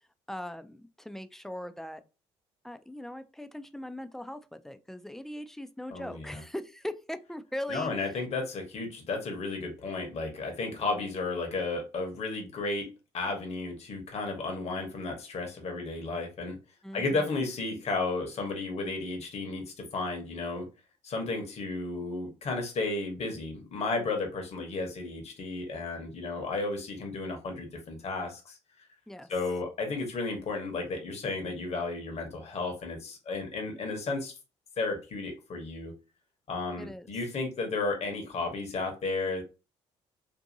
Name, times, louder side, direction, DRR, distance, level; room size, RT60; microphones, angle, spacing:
voice 1, 0.3-2.0 2.6-7.9 16.8-17.3 29.1-29.3 36.8-37.1, left 1 dB, 5° left, 0.3 m, -40 dB
voice 2, 5.9-6.4 7.7-12.9 13.1-16.6 16.9-20.7 21.0-28.9 29.3-34.3 34.8-35.9 36.5-39.4, left 3 dB, 50° left, 1.0 m, -33 dB
2.7 x 2.5 x 2.6 m
hypercardioid pair, 55°, 14 cm